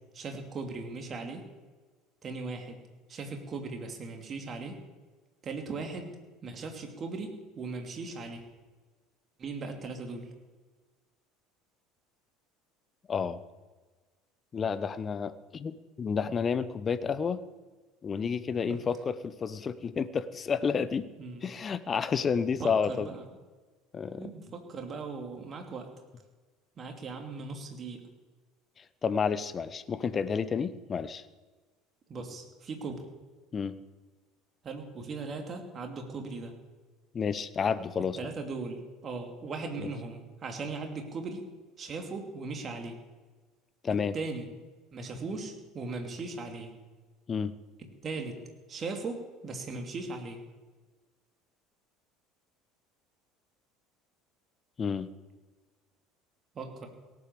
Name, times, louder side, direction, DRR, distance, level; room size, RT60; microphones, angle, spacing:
voice 1, 0.1-1.4 2.2-2.8 3.1-4.8 5.4-6.1 6.4-8.4 9.4-10.3 21.2-21.5 22.6-23.2 24.2-25.9 26.8-28.1 32.1-33.1 34.6-36.6 38.2-41.5 41.8-43.0 44.1-44.5 44.9-46.7 48.0-48.4 48.7-50.4 56.5-56.9, right 3 dB, 35° right, 4 dB, 2.7 m, -38 dB
voice 2, 13.1-13.4 14.5-17.4 18.0-21.1 21.4-23.1 23.9-24.3 28.8-31.2 33.5-33.8 37.1-38.3 39.8-39.9 43.8-44.1 47.3-47.5 54.8-55.1, left 6 dB, 30° left, 15 dB, 0.9 m, -30 dB
17.5 x 8.7 x 6.8 m, 1.3 s
figure-of-eight pair, 65°, 0 cm